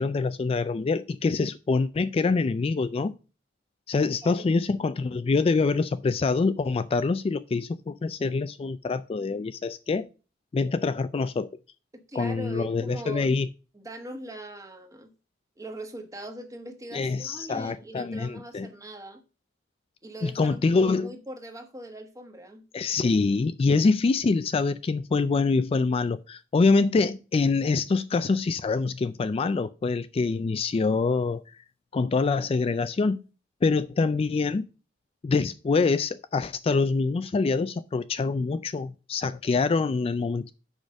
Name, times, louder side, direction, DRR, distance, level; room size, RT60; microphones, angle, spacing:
voice 1, 0.0-3.1 3.9-10.1 10.5-11.5 12.1-13.5 16.9-18.7 20.2-21.1 22.7-31.4 31.9-33.2 33.6-34.6 35.2-40.5, left 4 dB, 30° left, 0.3 m, -25 dB
voice 2, 11.9-13.3 13.7-15.1 15.6-19.2 20.0-22.6, right 1 dB, 20° right, 1.2 m, -41 dB
6.3 x 5.0 x 6.2 m
head